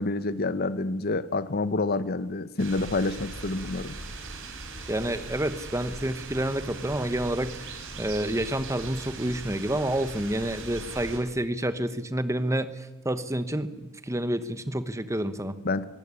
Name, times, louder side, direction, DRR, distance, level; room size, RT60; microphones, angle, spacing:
voice 1, 0.0-3.9 15.6-15.9, left 3 dB, 45° left, 15 dB, 0.9 m, -28 dB
sound 1, 2.6-11.2, right 3 dB, 60° right, 4.8 m, -40 dB
voice 2, 4.9-15.6, right 1 dB, 15° right, 12 dB, 1.2 m, -29 dB
23.5 x 16.0 x 9.9 m, 1.1 s
head